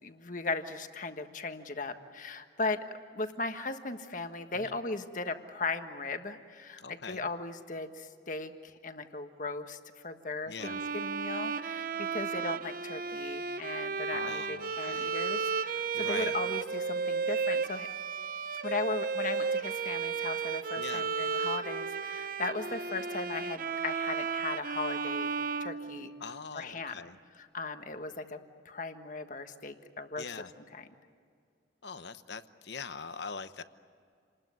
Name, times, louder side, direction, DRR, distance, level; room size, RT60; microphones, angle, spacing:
voice 1, 0.0-17.9 18.6-25.3 25.6-26.1 26.5-27.0 27.5-28.4 28.6-30.3 30.7-30.9, left 3 dB, 45° left, 7 dB, 1.4 m, -37 dB
voice 2, 6.8-7.3 10.5-10.8 14.0-15.1 15.9-16.4 20.8-21.1 26.2-27.2 30.2-30.5 31.8-33.6, left 5 dB, 65° left, 12 dB, 1.0 m, -42 dB
Bowed string instrument, 10.6-26.5, right 5 dB, 45° right, 0.7 m, -34 dB
28.5 x 20.0 x 9.4 m, 2.2 s
head